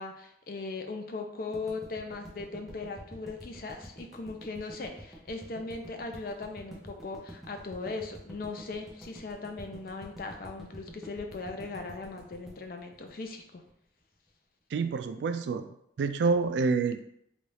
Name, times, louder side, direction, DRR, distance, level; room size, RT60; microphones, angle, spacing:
voice 1, 0.0-13.6, left 3 dB, 55° left, 4 dB, 0.5 m, -39 dB
sound 1, 1.5-13.7, equal, ahead, 0.6 m, -48 dB
voice 2, 14.7-15.7 16.0-17.0, right 4 dB, 75° right, 9 dB, 0.3 m, -27 dB
4.0 x 2.3 x 3.2 m, 0.74 s
head